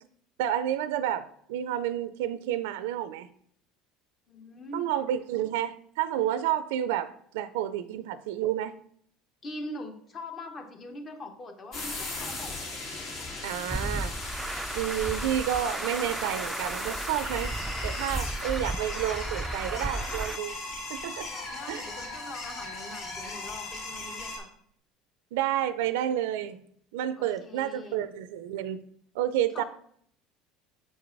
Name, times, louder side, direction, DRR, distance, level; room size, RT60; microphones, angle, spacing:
voice 1, 0.4-3.3 4.7-8.7 13.4-14.1 14.7-17.5 17.8-20.5 20.9-21.3 21.7-21.8 25.3-26.6 26.9-28.8 29.1-29.6, right 11 dB, 80° right, 14 dB, 0.4 m, -30 dB
voice 2, 4.3-4.9 9.4-12.8 21.3-24.5 27.2-28.0 29.5-29.6, left 1 dB, 40° left, 4 dB, 1.4 m, -42 dB
sound 1, 11.7-24.4, left 3 dB, 60° left, 2.8 m, -38 dB
Truck, 13.7-20.4, right 2 dB, 10° right, 0.3 m, -34 dB
7.3 x 4.6 x 4.0 m, 0.64 s
hypercardioid pair, 85°, 0 cm